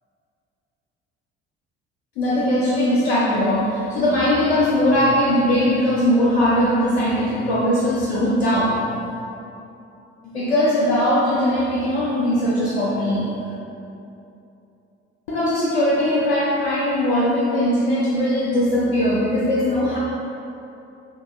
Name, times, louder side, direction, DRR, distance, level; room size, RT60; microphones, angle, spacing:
voice 1, 2.2-8.8 10.3-13.3 15.3-20.0, left 1 dB, 75° left, -6 dB, 0.7 m, -20 dB
5.3 x 3.1 x 2.4 m, 2.8 s
figure-of-eight pair, 50°, 33 cm